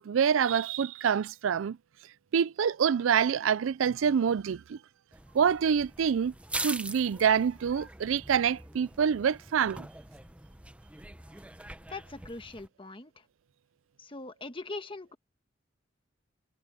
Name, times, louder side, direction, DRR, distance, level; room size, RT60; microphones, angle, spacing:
voice 1, 0.0-1.8 2.3-4.8 5.3-6.3 6.6-9.9, right 7 dB, 85° right, 0.4 m, -26 dB
sound 1, 5.1-12.7, right 2 dB, 5° right, 0.8 m, -42 dB
voice 2, 11.9-13.2 14.0-15.2, left 3 dB, 25° left, 1.3 m, -41 dB
head